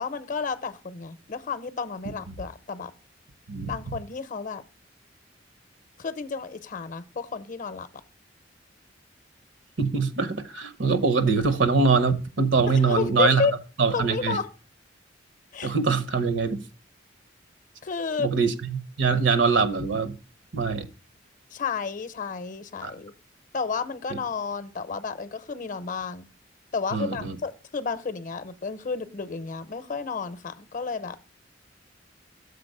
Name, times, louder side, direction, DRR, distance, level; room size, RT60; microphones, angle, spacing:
voice 1, 0.0-2.9 3.6-4.6 6.0-7.9 12.7-13.5 13.9-14.5 15.5-15.8 17.8-18.3 21.5-23.1 23.5-26.3 26.7-31.2, left 5 dB, 45° left, 0.6 m, -31 dB
voice 2, 9.8-13.4 13.8-14.4 15.6-16.6 18.2-20.1 20.5-20.9 22.8-22.9 26.9-27.4, right 4 dB, 85° right, 1.0 m, -23 dB
6.8 x 4.2 x 6.5 m
head